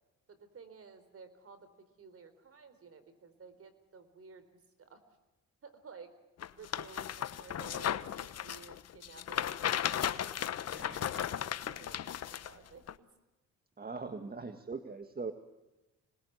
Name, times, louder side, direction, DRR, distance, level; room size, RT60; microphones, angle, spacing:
voice 1, 0.3-1.7 2.0-5.0 5.6-6.1 6.6-10.4 10.7-13.1, right 5 dB, 50° right, 11 dB, 4.3 m, -54 dB
sound 1, 6.4-12.5 12.9-13.0, left 10 dB, 55° left, 1.1 m, -35 dB
sound 2, 10.3-11.6 12.0-12.1, left 1 dB, ahead, 5.9 m, -55 dB
voice 2, 13.8-15.3, right 4 dB, 30° right, 8 dB, 1.8 m, -40 dB
26.0 x 20.0 x 9.5 m, 1.0 s
cardioid pair, 90°, 30 cm